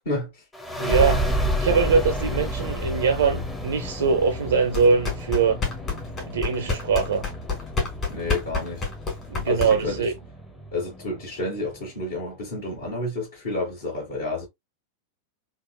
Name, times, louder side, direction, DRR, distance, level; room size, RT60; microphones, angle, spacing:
sound 1, 0.5-11.8, equal, 10° left, 0.7 m, -31 dB
voice 1, 0.8-1.3 1.6-5.6 6.3-7.3 9.3-10.1, right 5 dB, 65° right, 0.4 m, -22 dB
sound 2, 4.7-10.0, left 4 dB, 30° left, 1.8 m, -29 dB
voice 2, 8.1-8.8 9.5-10.0 10.7-14.5, left 2 dB, 60° left, 1.8 m, -30 dB
3.6 x 2.4 x 2.3 m
figure-of-eight pair, 90°, 0 cm